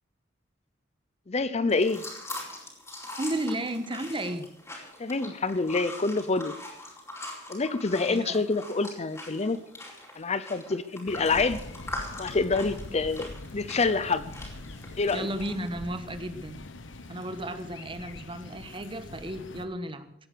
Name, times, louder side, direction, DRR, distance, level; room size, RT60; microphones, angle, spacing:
voice 1, 1.3-2.1 5.0-6.5 7.5-9.6 10.2-11.6 12.2-14.3 15.0-15.3, left 3 dB, 35° left, 14 dB, 0.6 m, -27 dB
sound 1, 1.7-15.7, left 1 dB, 15° left, 4.4 m, -42 dB
voice 2, 3.2-4.5 8.1-8.5 15.1-16.6 17.1-20.1, right 1 dB, 25° right, 9 dB, 1.3 m, -33 dB
sound 2, 11.1-19.7, left 2 dB, 80° left, 1.3 m, -43 dB
17.0 x 10.5 x 6.8 m, 0.77 s
head